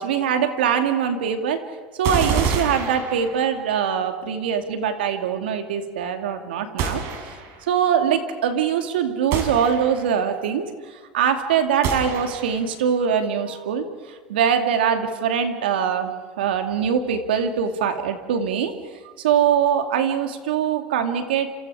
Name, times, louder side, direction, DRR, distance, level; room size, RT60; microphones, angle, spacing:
voice 1, 0.0-1.6 2.0-7.0 7.7-10.6 10.9-18.7 19.2-21.5, right 8 dB, 90° right, 6 dB, 2.5 m, -23 dB
sound 1, 2.0-3.7 6.8-7.7 9.3-10.2 11.8-12.7, right 6 dB, 60° right, 5.1 m, -27 dB
28.0 x 27.5 x 4.9 m, 1.5 s
supercardioid pair, 105°, 5 cm